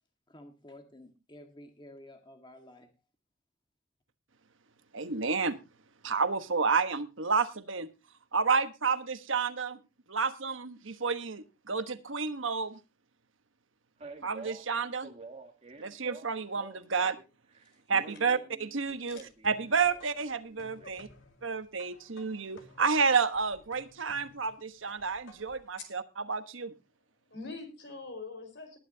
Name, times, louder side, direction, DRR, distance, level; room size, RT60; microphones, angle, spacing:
voice 1, 0.3-2.9, left 1 dB, 25° left, 5 dB, 1.7 m, -52 dB
voice 2, 4.9-5.6 6.0-7.9 8.3-9.8 10.1-12.8 14.2-15.1 15.8-17.2 17.9-19.2 19.4-21.1 21.4-26.7, right 5 dB, 80° right, 11 dB, 1.2 m, -30 dB
Male speech man speaking, 14.0-17.2 17.5-20.9, right 3 dB, 30° right, 2.0 m, -49 dB
sound 1, 18.8-25.7, left 1 dB, 80° left, 2.3 m, -58 dB
voice 3, 27.3-28.8, left 3 dB, 60° left, 6 dB, 4.8 m, -44 dB
20.0 x 10.0 x 2.8 m, 0.28 s
head